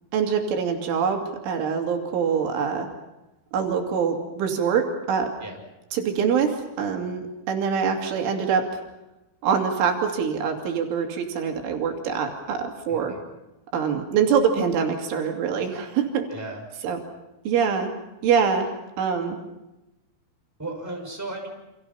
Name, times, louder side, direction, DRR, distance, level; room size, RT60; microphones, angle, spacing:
voice 1, 0.1-2.9 3.5-5.3 5.9-8.8 9.4-13.1 13.7-16.3 16.8-17.0 17.5-17.9 18.2-18.7 19.0-19.4, right 6 dB, 85° right, 2 dB, 5.1 m, -24 dB
voice 2, 12.9-13.2 16.3-16.6 20.6-21.5, right 2 dB, 5° right, 1 dB, 6.1 m, -35 dB
29.5 x 27.5 x 5.7 m, 0.97 s
omnidirectional pair, 5.4 m